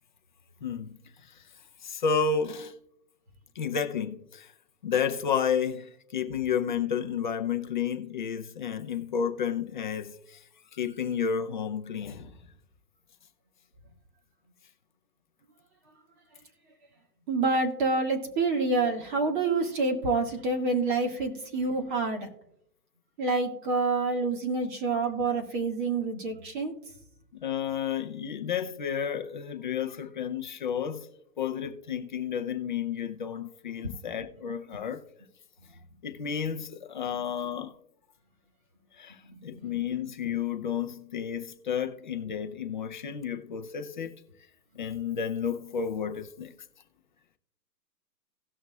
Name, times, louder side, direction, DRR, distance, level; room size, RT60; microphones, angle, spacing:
voice 1, 0.6-1.0 1.8-2.7 3.6-4.5 4.8-10.4 10.8-12.3 21.9-22.0 27.4-31.1 31.4-35.0 36.0-37.7 39.0-39.2 39.4-44.1 44.8-46.5, left 7 dB, 30° left, 0.6 m, -31 dB
voice 2, 17.3-22.3 23.2-26.7 33.8-33.9 39.6-39.7, right 3 dB, 30° right, 1.8 m, -27 dB
17.5 x 6.4 x 2.3 m
hypercardioid pair, 160°, 50 cm